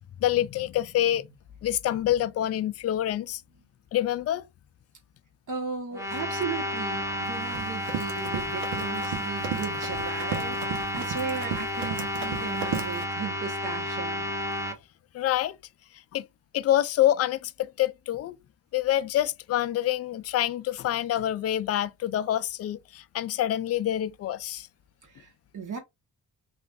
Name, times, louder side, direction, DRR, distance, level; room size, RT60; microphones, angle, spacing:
voice 1, 0.2-1.3 1.6-3.4 3.9-4.5 15.1-15.6 16.1-16.2 16.5-18.4 18.7-24.7, left 12 dB, 40° left, 0.4 m, -26 dB
voice 2, 5.5-14.3 25.1-25.8, right 5 dB, 55° right, 1.4 m, -36 dB
sound 1, 5.9-14.8, equal, 5° right, 0.9 m, -31 dB
Run, 7.3-13.0, right 7 dB, 80° right, 0.9 m, -36 dB
3.1 x 2.5 x 2.5 m
supercardioid pair, 55°, 38 cm